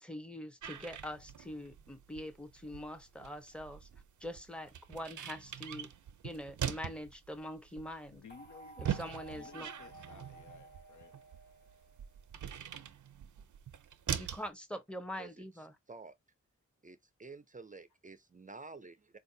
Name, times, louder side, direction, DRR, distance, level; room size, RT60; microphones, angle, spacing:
voice 1, 0.0-3.9 4.2-5.9 6.2-8.2 8.8-9.7 14.2-15.7, left 1 dB, 5° left, 0.7 m, -44 dB
sound 1, 0.6-14.5, right 9 dB, 90° right, 0.5 m, -43 dB
voice 2, 8.1-8.9 9.3-11.2, left 6 dB, 80° left, 0.6 m, -56 dB
sound 2, 8.3-12.5, right 1 dB, 35° left, 1.2 m, -54 dB
voice 3, 16.8-19.2, right 3 dB, 30° right, 0.4 m, -50 dB
4.1 x 2.6 x 2.6 m
wide cardioid pair, 70°, 30 cm